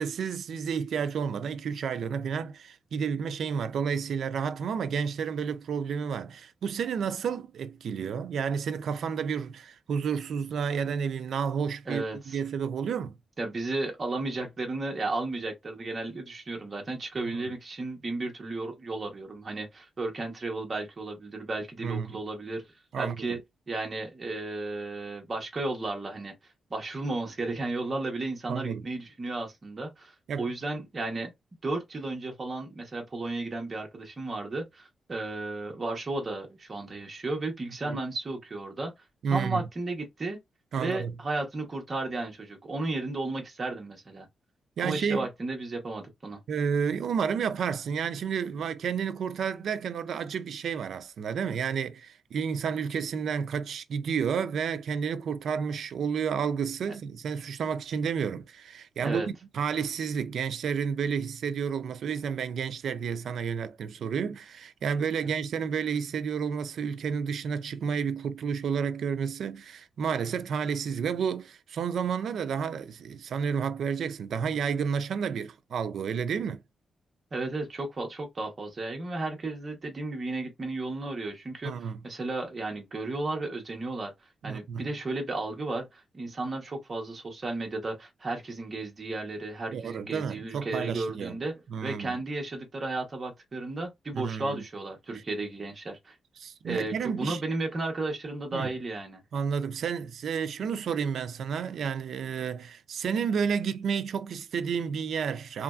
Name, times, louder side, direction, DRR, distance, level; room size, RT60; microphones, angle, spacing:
voice 1, 0.0-13.2 17.3-17.4 21.8-22.2 22.9-23.4 28.5-28.8 30.3-30.5 37.9-38.0 39.2-39.7 40.7-41.1 44.8-45.3 46.5-76.6 81.6-82.0 84.5-84.9 89.7-91.4 91.7-92.2 94.1-94.6 96.4-97.4 98.5-98.7 99.3-105.6, right 6 dB, 65° right, 0.3 m, -31 dB
voice 2, 11.9-12.4 13.4-22.7 23.0-23.4 23.7-26.3 26.7-31.3 31.6-38.9 39.3-40.4 40.8-44.3 44.8-46.4 59.0-59.3 65.2-65.3 77.3-84.1 84.4-91.5 91.8-96.2 96.6-99.2, right 2 dB, 30° right, 0.9 m, -34 dB
3.0 x 2.5 x 2.3 m
wide cardioid pair, 170°, 0 cm